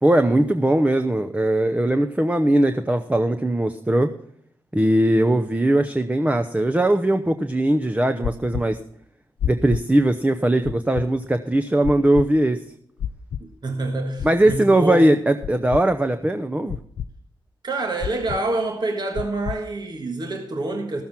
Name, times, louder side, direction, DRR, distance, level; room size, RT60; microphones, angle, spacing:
voice 1, 0.0-4.1 4.7-8.8 9.4-12.6 14.2-16.8, right 1 dB, 15° right, 0.8 m, -20 dB
sound 1, 8.2-8.6 9.4-9.8 10.6-11.0 11.8-12.2 13.0-13.4 14.2-14.6 15.4-15.8 16.7-17.1 18.0-18.4 19.2-19.6, left 9 dB, 75° left, 0.4 m, -28 dB
voice 2, 13.4-15.1 17.6-21.0, right 2 dB, 50° right, 1.6 m, -27 dB
14.0 x 7.2 x 5.9 m
supercardioid pair, 45°, 9 cm